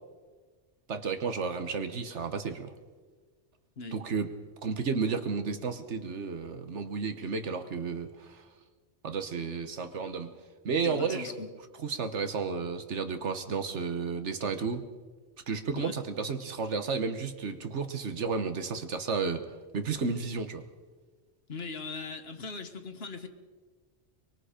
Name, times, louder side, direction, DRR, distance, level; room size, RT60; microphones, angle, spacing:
voice 1, 0.9-2.7 3.9-4.3 4.6-8.4 9.0-10.3 10.6-11.3 11.8-14.9 15.5-19.4 19.7-20.6, right 5 dB, 80° right, 9 dB, 1.5 m, -32 dB
voice 2, 10.8-11.5 15.7-16.0 21.5-23.3, left 4 dB, 60° left, 8 dB, 1.6 m, -40 dB
23.5 x 23.0 x 5.1 m, 1.4 s
omnidirectional pair, 1.2 m